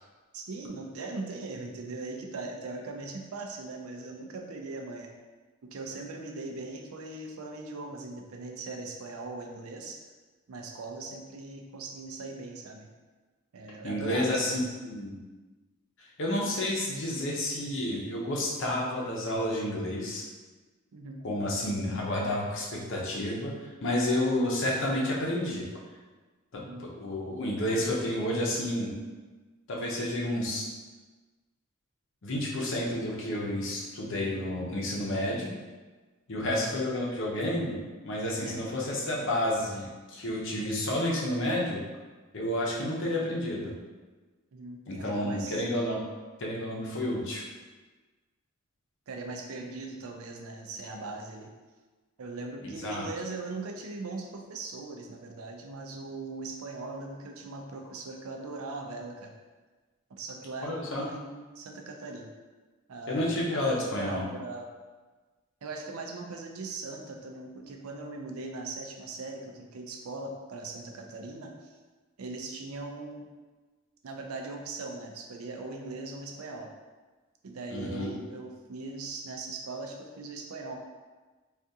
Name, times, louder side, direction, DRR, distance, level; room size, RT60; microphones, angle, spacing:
voice 1, 0.3-5.1 5.6-10.0 10.5-12.9 13.5-14.7 20.9-21.3 26.6-26.9 36.3-36.7 38.4-38.6 44.5-45.6 49.1-51.5 52.2-59.3 60.1-62.3 62.9-64.7 65.6-71.8 72.2-73.3 74.0-76.7 77.4-80.8, right 3 dB, 85° right, 3 dB, 0.4 m, -40 dB
voice 2, 13.8-15.2 16.0-20.2 21.2-25.7 26.5-28.9 29.7-30.7 32.2-35.5 36.3-37.8 38.0-41.8 42.3-43.7 44.9-46.0 46.4-47.4 52.6-53.1 60.6-61.1 63.1-64.2 77.7-78.1, left 1 dB, 60° left, -3 dB, 0.7 m, -30 dB
3.5 x 2.4 x 2.7 m, 1.3 s
head